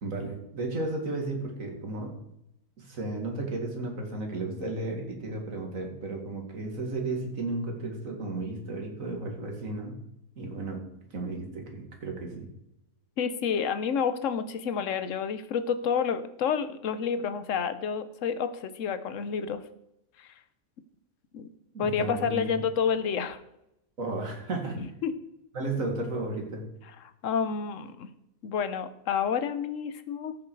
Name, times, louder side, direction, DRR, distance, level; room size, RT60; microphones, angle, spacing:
voice 1, 0.0-2.1 2.8-10.0 10.4-10.8 11.1-12.5 21.7-22.5 24.0-24.9 25.5-26.6, right 2 dB, 65° right, 2 dB, 2.5 m, -34 dB
voice 2, 13.2-19.6 20.2-20.3 21.3-21.5 21.8-23.4 24.8-25.1 27.2-28.1 28.4-30.4, left 6 dB, 60° left, 12 dB, 1.1 m, -29 dB
14.0 x 6.9 x 4.7 m, 0.83 s
omnidirectional pair, 1.5 m